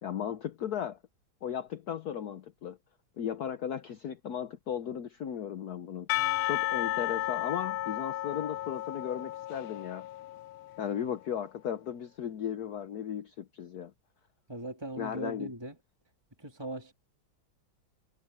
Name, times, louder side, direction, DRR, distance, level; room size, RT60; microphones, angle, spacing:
voice 1, 0.0-1.0 1.4-2.8 3.2-10.1 10.8-13.9 15.0-15.5, left 9 dB, 60° left, 1.3 m, -36 dB
Percussion / Church bell, 6.1-10.9, left 16 dB, 90° left, 1.4 m, -33 dB
voice 2, 14.5-15.8 16.4-16.9, right 1 dB, 10° right, 2.7 m, -39 dB
omnidirectional pair, 2.2 m